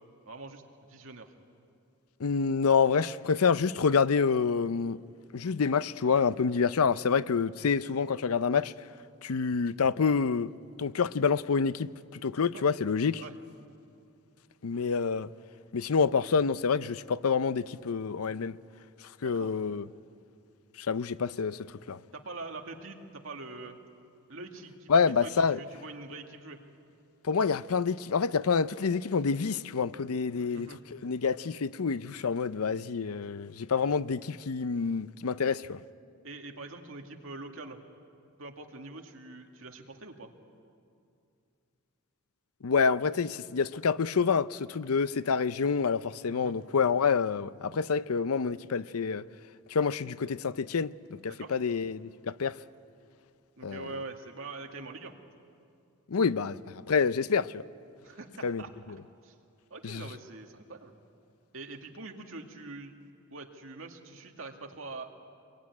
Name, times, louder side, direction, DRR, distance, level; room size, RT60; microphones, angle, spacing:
voice 1, 0.3-1.3 12.5-12.6 13.2-13.3 19.2-19.6 22.1-23.8 24.3-26.6 30.5-30.8 36.2-37.8 38.4-40.3 46.3-46.6 51.3-51.5 53.6-55.1 58.0-58.7 59.2-59.3 59.7-60.9 61.5-63.0 63.3-65.1, right 3 dB, 70° right, 2.2 m, -44 dB
voice 2, 2.2-5.0 5.3-8.7 9.2-10.5 10.8-11.9 12.2-13.2 14.6-15.3 15.7-18.6 19.2-19.8 20.8-21.6 21.9-22.0 24.9-25.6 27.3-35.8 42.6-49.2 49.7-50.9 51.2-52.6 53.6-53.9 56.1-57.6 58.4-58.6 59.8-60.0, left 5 dB, 90° left, 0.6 m, -27 dB
25.0 x 22.0 x 9.7 m
head